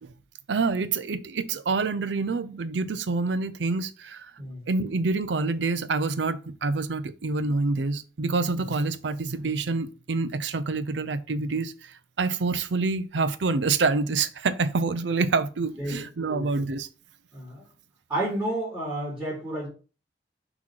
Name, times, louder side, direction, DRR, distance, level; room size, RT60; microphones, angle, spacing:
voice 1, 0.5-4.3 4.7-16.9, right 3 dB, 85° right, 0.6 m, -27 dB
voice 2, 16.3-16.6 17.3-17.6 18.1-19.7, right 1 dB, 5° right, 2.8 m, -31 dB
6.1 x 3.1 x 5.7 m
head